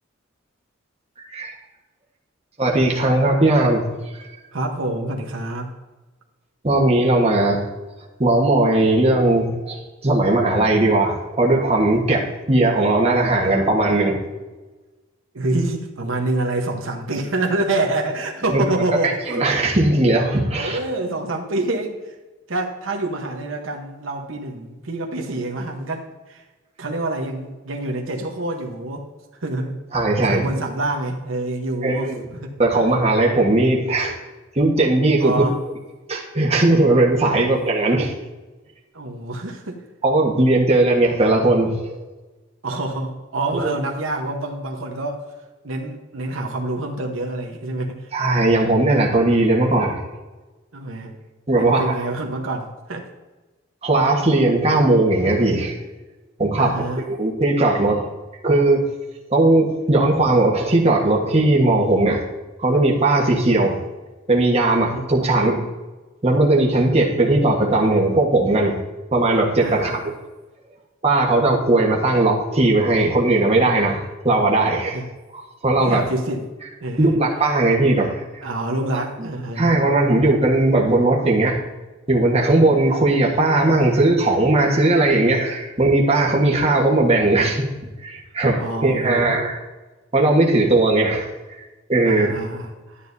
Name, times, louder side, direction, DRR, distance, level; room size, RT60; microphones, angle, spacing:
voice 1, 2.6-3.9 4.1-4.2 6.6-7.6 8.2-14.2 18.5-18.6 19.3-20.8 29.9-30.5 31.8-32.2 32.6-34.2 34.5-35.4 36.1-38.1 40.0-42.0 43.5-43.7 48.1-50.0 51.5-51.9 53.8-55.8 56.4-58.0 58.4-58.9 59.3-62.2 62.6-63.8 64.3-65.6 66.2-68.8 69.1-70.0 71.0-75.0 75.6-76.1 77.0-78.2 79.2-79.3 79.5-81.6 82.1-87.7 88.0-89.6 90.1-91.3 91.9-92.3, right 2 dB, 30° right, -2 dB, 1.4 m, -18 dB
voice 2, 4.5-5.7 15.3-19.6 20.5-22.1 22.5-26.4 26.8-29.1 29.4-29.8 30.3-32.1 32.4-32.8 35.2-35.6 37.3-37.5 38.9-39.8 42.6-45.2 45.6-48.1 50.7-51.1 51.6-53.1 56.6-57.0 64.9-65.0 69.6-70.0 74.9-75.1 75.8-76.4 76.8-77.2 78.4-79.7 88.6-89.4 92.0-93.0, right 2 dB, 80° right, 1 dB, 1.1 m, -27 dB
11.0 x 9.8 x 2.7 m, 1.2 s
head